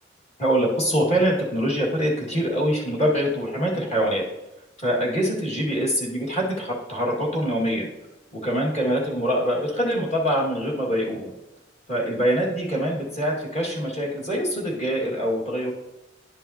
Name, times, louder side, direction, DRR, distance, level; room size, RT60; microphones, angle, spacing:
voice 1, 0.4-4.2 4.8-7.9 8.3-11.3 11.9-15.7, equal, 35° left, -4 dB, 2.0 m, -24 dB
10.5 x 5.5 x 2.9 m, 0.96 s
head